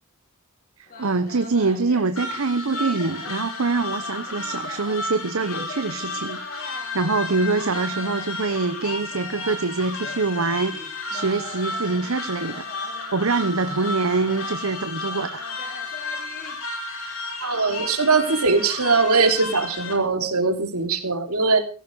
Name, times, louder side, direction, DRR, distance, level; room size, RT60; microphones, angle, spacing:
voice 1, 0.8-12.7 13.1-15.5, right 3 dB, 65° right, 10 dB, 0.9 m, -25 dB
sound 1, 0.9-16.6, left 2 dB, 40° left, 4.8 m, -42 dB
sound 2, 2.2-19.9, left 2 dB, 65° left, 5.4 m, -33 dB
voice 2, 17.4-21.6, right 4 dB, 80° right, 5 dB, 3.2 m, -21 dB
16.5 x 15.0 x 4.8 m, 0.38 s
head